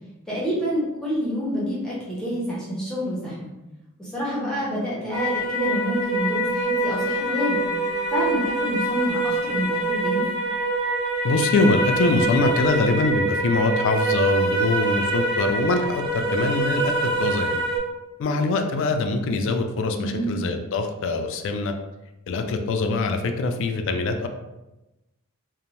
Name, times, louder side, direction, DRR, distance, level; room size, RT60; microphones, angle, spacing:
voice 1, 0.3-3.5 4.0-7.6 8.1-10.2 20.0-20.5, equal, 5° left, -7 dB, 0.6 m, -28 dB
sound 1, 5.1-17.8, right 2 dB, 90° right, 0.8 m, -25 dB
Wind instrument woodwind instrument, 5.8-9.3, left 4 dB, 50° right, 1.2 m, -45 dB
voice 2, 11.2-17.6 18.2-21.7 22.3-24.3, left 3 dB, 60° left, 6 dB, 0.3 m, -23 dB
2.5 x 2.0 x 3.0 m, 0.98 s
head